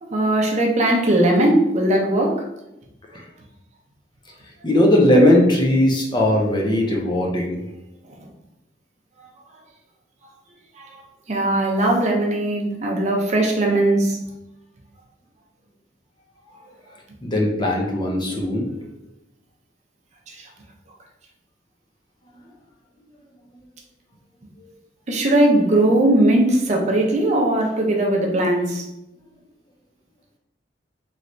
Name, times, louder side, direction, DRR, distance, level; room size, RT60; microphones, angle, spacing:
voice 1, 0.0-2.5 8.1-8.2 10.7-11.0 11.3-14.2 20.3-20.5 25.1-28.8, right 1 dB, 40° right, 0 dB, 0.5 m, -19 dB
voice 2, 4.6-7.6 17.2-18.7 24.6-24.7, left 1 dB, 25° left, -1 dB, 0.5 m, -18 dB
3.1 x 3.1 x 2.6 m, 0.89 s
head